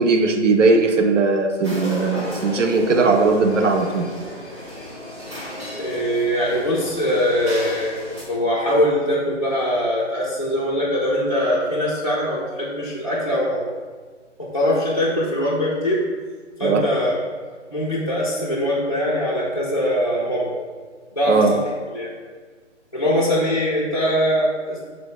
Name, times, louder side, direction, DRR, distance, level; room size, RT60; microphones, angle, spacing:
voice 1, 0.0-4.1 16.6-16.9 21.3-21.5, right 3 dB, 85° right, 4 dB, 0.6 m, -18 dB
sound 1, 1.6-8.2, left 1 dB, 25° right, 0.9 m, -34 dB
voice 2, 5.8-13.6 14.4-16.0 16.6-17.2 17.7-20.5 21.2-22.1 22.9-24.9, equal, 30° left, -7 dB, 0.4 m, -22 dB
4.9 x 2.0 x 4.6 m, 1.5 s
figure-of-eight pair, 165°, 36 cm